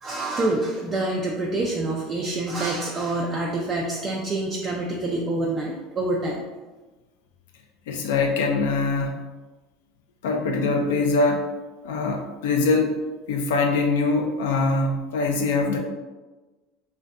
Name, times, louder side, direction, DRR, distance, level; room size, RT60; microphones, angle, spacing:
voice 1, 0.0-6.4, right 2 dB, 35° right, -2 dB, 0.3 m, -26 dB
voice 2, 7.9-9.3 10.2-11.5 11.8-12.9 13.3-15.8, left 3 dB, 80° left, 2 dB, 0.3 m, -23 dB
2.5 x 2.2 x 2.4 m, 1.2 s
hypercardioid pair, 90°, 0 cm